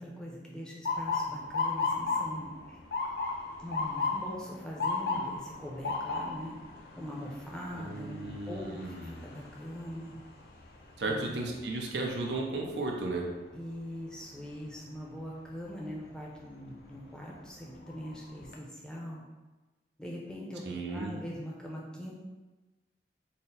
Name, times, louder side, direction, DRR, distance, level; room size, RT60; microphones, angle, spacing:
voice 1, 0.0-2.8 3.6-6.6 7.0-10.2 11.0-11.4 13.5-19.2 20.0-20.6 20.9-22.1, equal, 5° left, -3 dB, 0.5 m, -42 dB
Motor vehicle (road) / Siren, 0.8-12.7 13.2-13.6 14.4-14.7 16.6-16.8 17.3-17.4 17.9-18.5, left 4 dB, 60° left, 0.4 m, -35 dB
voice 2, 7.7-9.3 11.0-13.2 20.6-21.1, right 2 dB, 75° right, 0 dB, 0.6 m, -35 dB
4.1 x 2.1 x 3.9 m, 1.2 s
head